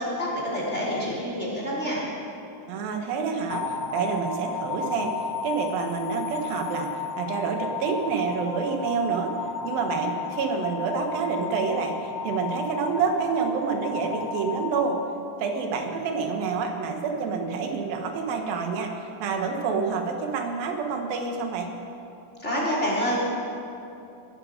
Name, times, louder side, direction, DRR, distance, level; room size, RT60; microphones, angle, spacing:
voice 1, 0.0-2.0 22.4-23.2, equal, 20° left, -5 dB, 3.0 m, -27 dB
voice 2, 2.7-9.3 9.6-15.0 15.4-21.7, right 5 dB, 85° right, 4 dB, 3.1 m, -28 dB
sound 1, 3.5-15.7, left 6 dB, 70° left, 1.5 m, -34 dB
20.5 x 11.5 x 5.1 m, 2.7 s
omnidirectional pair, 4.0 m